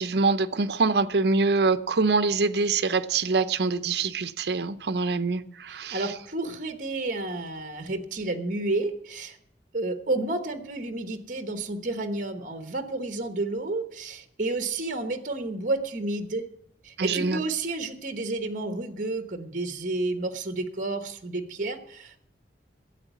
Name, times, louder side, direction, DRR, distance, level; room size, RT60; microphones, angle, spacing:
voice 1, 0.0-6.0 17.0-17.4, right 4 dB, 65° right, 0.6 m, -24 dB
voice 2, 5.7-9.4 9.7-16.4 16.8-22.2, right 2 dB, 45° right, 1.1 m, -31 dB
12.5 x 8.2 x 8.0 m
head